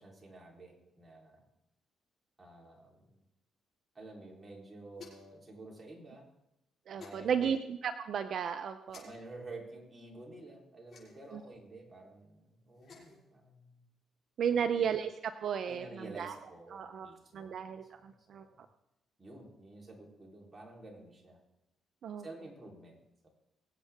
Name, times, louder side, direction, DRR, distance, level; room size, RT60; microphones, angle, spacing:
voice 1, 0.0-1.5 2.4-3.2 3.9-6.3 6.9-7.5 9.0-13.8 14.4-15.0 15.6-18.6 19.2-21.4 22.2-23.3, right 2 dB, 20° right, -2 dB, 3.9 m, -51 dB
sound 1, 4.9-5.4 7.0-7.2 8.9-9.0 10.9-11.3 12.7-13.2, left 5 dB, 55° left, 6.0 m, -53 dB
voice 2, 6.9-7.6 7.8-9.1 11.3-11.4 14.4-16.3 16.7-18.4 22.0-22.2, right 7 dB, 60° right, 8 dB, 0.7 m, -34 dB
23.0 x 8.3 x 3.7 m, 0.88 s
cardioid pair, 90°, 0 cm